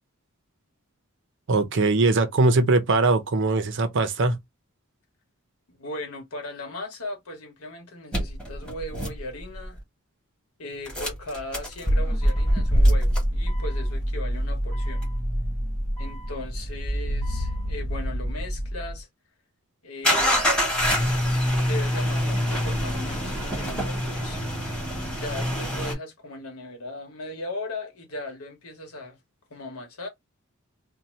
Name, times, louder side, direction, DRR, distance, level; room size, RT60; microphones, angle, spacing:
voice 1, 1.5-4.4, right 3 dB, 55° right, 0.6 m, -21 dB
voice 2, 5.7-9.8 10.6-15.1 16.0-19.1 19.8-20.4 21.7-24.4 25.2-29.2 29.5-30.1, left 2 dB, 80° left, 1.2 m, -38 dB
sound 1, 8.1-9.8 10.9-19.0 20.0-25.9, equal, 5° left, 1.1 m, -25 dB
2.7 x 2.1 x 3.1 m
head